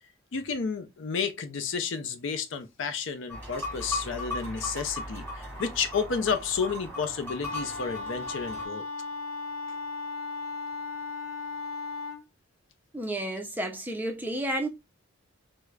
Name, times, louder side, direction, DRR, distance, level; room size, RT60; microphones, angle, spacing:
voice 1, 0.3-8.8, left 5 dB, 65° left, 0.5 m, -31 dB
sound 1, 3.3-8.7, left 1 dB, 10° left, 1.6 m, -37 dB
Wind instrument woodwind instrument, 7.4-12.2, left 3 dB, 85° left, 0.9 m, -36 dB
voice 2, 12.9-14.7, right 1 dB, 10° right, 0.4 m, -31 dB
4.5 x 2.1 x 2.3 m
head